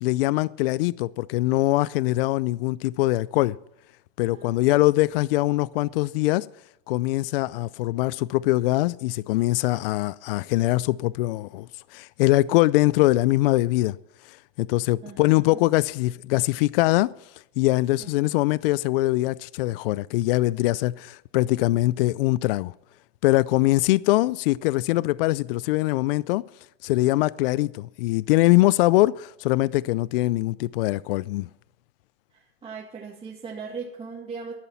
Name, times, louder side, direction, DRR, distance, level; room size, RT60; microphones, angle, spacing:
voice 1, 0.0-3.6 4.2-6.5 6.9-14.0 14.2-17.1 17.6-22.7 23.2-26.4 26.8-31.5, left 18 dB, 65° left, 0.4 m, -22 dB
voice 2, 4.3-4.8 15.0-15.6 18.0-18.3 32.3-34.5, right 5 dB, 20° right, 2.0 m, -39 dB
14.0 x 11.0 x 5.8 m
supercardioid pair, 125°, 30 cm